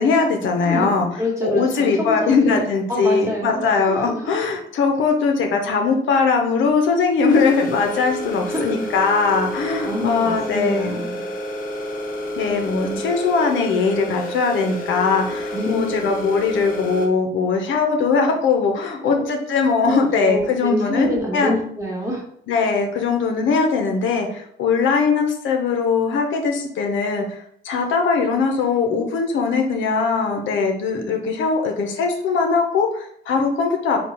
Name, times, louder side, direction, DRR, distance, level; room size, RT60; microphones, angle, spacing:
voice 1, 0.0-1.1 1.4-11.0 12.4-21.5 22.5-34.0, left 5 dB, 75° left, 3 dB, 0.7 m, -20 dB
voice 2, 0.6-4.3 6.1-6.3 8.5-8.7 9.8-11.2 12.8-13.0 15.5-15.9 19.0-19.2 19.8-22.2, equal, 15° right, -2 dB, 1.4 m, -27 dB
sound 1, 7.3-17.1, equal, 45° left, 0.9 m, -29 dB
3.6 x 2.3 x 4.3 m, 0.65 s
cardioid pair, 90°, 20 cm